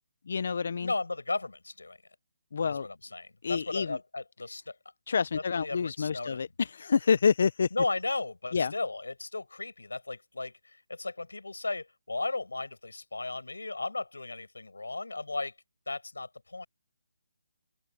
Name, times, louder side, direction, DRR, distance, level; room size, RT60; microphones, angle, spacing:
voice 1, 0.3-0.9 2.5-2.9 3.4-4.0 5.1-7.7 8.5-8.7, left 5 dB, 60° left, 0.6 m, -27 dB
voice 2, 0.8-2.0 2.6-4.8 5.6-6.4 7.7-15.5 15.9-16.7, left 3 dB, 85° left, 5.2 m, -35 dB
open air
figure-of-eight pair, 155°, 0 cm